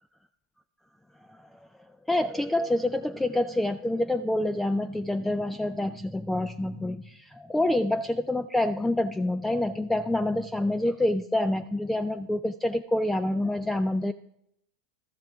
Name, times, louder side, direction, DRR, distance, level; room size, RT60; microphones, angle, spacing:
voice 1, 2.1-14.1, left 1 dB, 5° left, 12 dB, 0.4 m, -27 dB
13.0 x 12.0 x 3.6 m, 0.77 s
hypercardioid pair, 95°, 3 cm